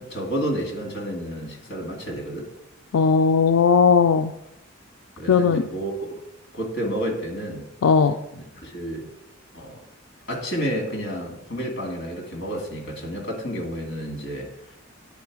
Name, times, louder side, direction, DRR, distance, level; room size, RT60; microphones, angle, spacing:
voice 1, 0.0-2.5 5.2-6.1 6.5-7.7 8.3-9.1 9.5-9.8 10.3-14.5, equal, 55° left, 1 dB, 1.9 m, -30 dB
voice 2, 2.9-4.3 5.3-5.6 7.8-8.1, left 5 dB, 80° left, 6 dB, 0.4 m, -17 dB
9.7 x 3.9 x 4.7 m, 0.84 s
head